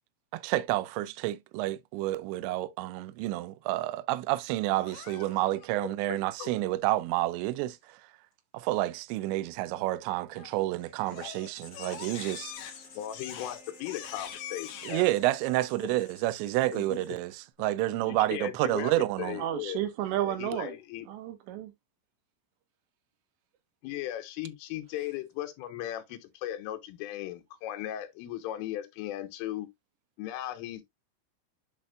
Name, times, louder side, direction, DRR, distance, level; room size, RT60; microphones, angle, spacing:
voice 1, 0.3-8.0 8.5-12.5 14.8-17.3 17.6-19.4, right 16 dB, 90° right, 2.5 m, -29 dB
Crying sobbing, 4.7-5.7 10.3-10.7 11.0-15.1, left 9 dB, 65° left, 2.8 m, -44 dB
voice 2, 5.8-6.6 13.0-15.0 16.7-17.0 18.1-19.9 20.2-21.1 23.8-29.7 30.2-30.8, left 13 dB, 85° left, 3.5 m, -37 dB
Writing, 11.5-17.5, left 5 dB, 45° left, 4.2 m, -53 dB
Wind instrument woodwind instrument, 11.6-16.1, equal, 20° left, 1.3 m, -58 dB
voice 3, 19.4-20.8 21.1-21.7, right 12 dB, 75° right, 3.0 m, -32 dB
10.5 x 4.3 x 2.4 m
omnidirectional pair, 5.8 m